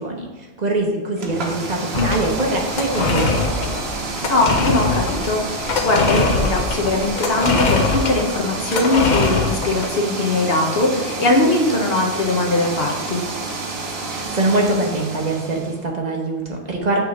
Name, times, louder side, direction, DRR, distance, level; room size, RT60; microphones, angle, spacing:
voice 1, 0.0-3.7 14.1-17.0, right 2 dB, 45° right, 1 dB, 1.0 m, -23 dB
sound 1, 1.2-15.8, right 3 dB, 80° right, 1.1 m, -29 dB
sound 2, 1.9-9.9, left 3 dB, 50° left, 0.7 m, -22 dB
voice 2, 4.3-13.2, left 2 dB, 65° left, 1 dB, 1.2 m, -20 dB
6.3 x 3.3 x 4.8 m, 1.2 s
omnidirectional pair, 1.1 m